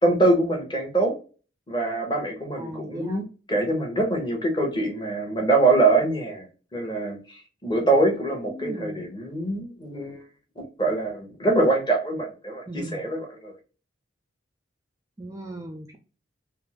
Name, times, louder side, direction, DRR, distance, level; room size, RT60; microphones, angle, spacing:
voice 1, 0.0-1.1 1.7-6.5 6.7-10.2 10.6-13.5, right 2 dB, 25° left, 1 dB, 0.9 m, -24 dB
voice 2, 2.6-3.2 8.5-9.1 12.7-13.0 15.2-16.0, right 1 dB, 15° right, 3 dB, 0.3 m, -37 dB
3.4 x 2.0 x 2.9 m, 0.35 s
head